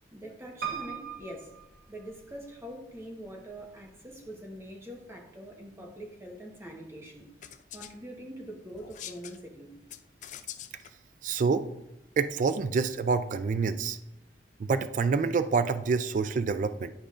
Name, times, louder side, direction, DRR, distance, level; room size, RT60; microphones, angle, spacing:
voice 1, 0.1-1.5 1.9-7.3 7.7-9.7, equal, 15° right, 0 dB, 1.1 m, -44 dB
Piano, 0.6-2.6 3.2-3.9 4.3-4.4 4.6-4.7, right 8 dB, 60° right, 0.9 m, -39 dB
sound 1, 7.4-7.9 8.7-9.4 9.9-10.9, left 10 dB, 45° left, 0.4 m, -44 dB
voice 2, 11.2-11.7 12.2-14.0 14.6-16.9, right 5 dB, 45° right, 11 dB, 0.3 m, -27 dB
10.5 x 4.9 x 2.5 m, 0.90 s
head